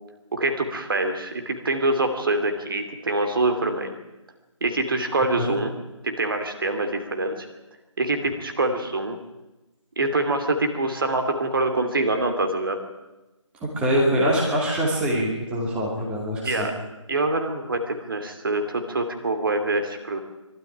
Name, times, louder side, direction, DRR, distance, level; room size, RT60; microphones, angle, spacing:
voice 1, 0.3-3.9 4.6-5.7 6.0-7.5 8.0-9.2 10.0-12.8 16.4-16.7 17.1-20.2, right 2 dB, 45° right, 6 dB, 2.7 m, -25 dB
voice 2, 13.8-16.7, equal, 5° right, -3 dB, 2.5 m, -23 dB
23.5 x 13.0 x 9.9 m, 1.0 s
figure-of-eight pair, 155°, 16 cm